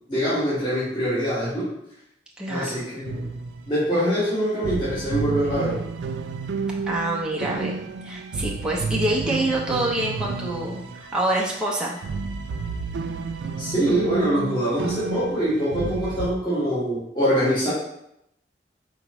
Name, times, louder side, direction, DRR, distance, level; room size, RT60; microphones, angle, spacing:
voice 1, 0.1-1.7 2.5-3.2 3.7-5.8 13.6-17.7, equal, 25° left, -11 dB, 1.4 m, -24 dB
voice 2, 2.4-2.8 6.9-12.0, right 1 dB, 5° right, -4 dB, 0.5 m, -26 dB
sound 1, 3.0-4.0 4.3-4.4 4.6-16.3, right 4 dB, 75° right, 0.3 m, -31 dB
4.4 x 3.8 x 3.0 m, 0.79 s
head